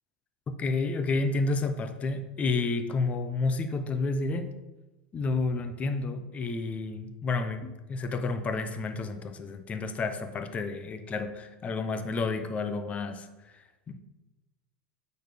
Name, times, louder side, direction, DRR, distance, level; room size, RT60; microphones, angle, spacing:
voice 1, 0.5-4.5 5.1-13.3 13.5-14.0, left 3 dB, 30° left, 8 dB, 0.9 m, -30 dB
8.9 x 4.3 x 5.1 m, 1.1 s
hypercardioid pair, 105°, 5 cm